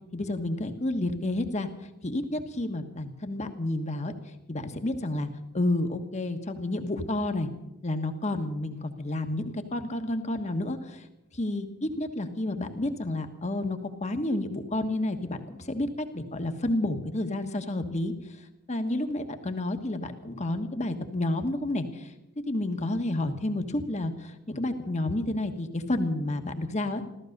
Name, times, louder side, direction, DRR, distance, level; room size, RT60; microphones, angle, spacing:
voice 1, 0.1-1.7 2.0-4.1 4.5-5.3 5.5-7.5 7.8-11.1 11.3-18.1 18.7-22.1 22.5-27.0, left 1 dB, 30° left, 7 dB, 1.3 m, -30 dB
14.5 x 14.5 x 6.6 m, 0.93 s
head